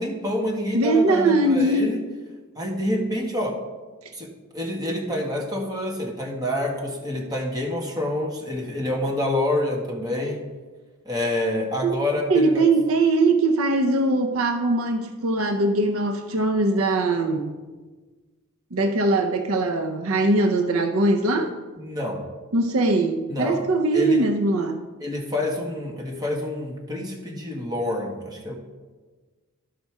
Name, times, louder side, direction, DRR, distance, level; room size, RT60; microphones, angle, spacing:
voice 1, 0.0-2.0 2.5-3.6 4.1-4.3 4.5-10.4 11.0-12.5 21.8-22.2 23.3-23.6 23.9-24.3 25.0-28.5, left 1 dB, 20° right, -1 dB, 1.7 m, -27 dB
voice 2, 0.7-1.9 11.8-12.0 12.3-17.6 18.7-21.5 22.5-24.8, right 2 dB, 70° right, 7 dB, 0.6 m, -21 dB
12.5 x 5.4 x 4.7 m, 1.3 s
head